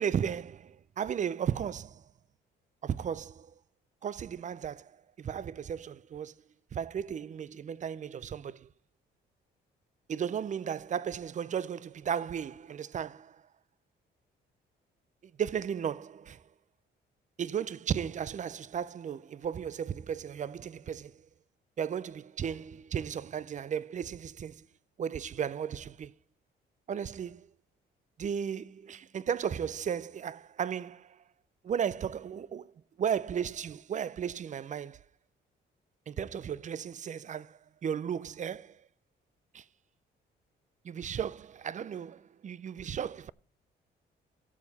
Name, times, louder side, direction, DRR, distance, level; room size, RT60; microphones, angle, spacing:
voice 1, 0.0-2.1 2.8-3.5 4.0-4.9 5.2-6.3 6.7-8.7 10.1-13.4 15.4-16.4 17.4-21.2 21.8-24.7 25.0-26.1 26.9-27.5 28.2-31.2 31.6-32.7 33.0-35.0 36.1-38.8 39.5-39.6 40.8-43.3, right 8 dB, 40° right, 0.5 m, -35 dB
16.0 x 7.0 x 4.1 m
cardioid pair, 90°, 20 cm